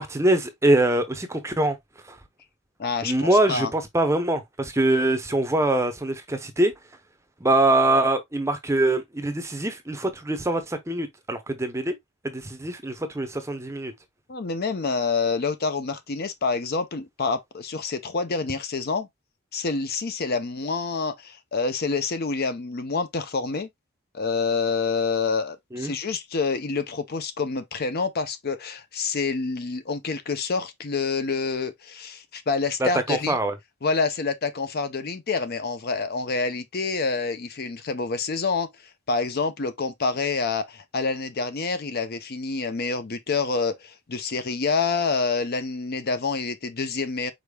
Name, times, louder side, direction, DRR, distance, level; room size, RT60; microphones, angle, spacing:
voice 1, 0.0-1.8 2.1-2.2 3.0-6.7 7.4-12.0 12.2-13.9 25.7-25.9 32.8-33.5, right 1 dB, 10° right, 0.7 m, -23 dB
voice 2, 2.8-3.7 14.3-19.1 19.5-23.7 24.1-33.4 33.8-38.7 39.1-47.3, left 4 dB, 45° left, 0.6 m, -27 dB
5.0 x 4.5 x 2.2 m
head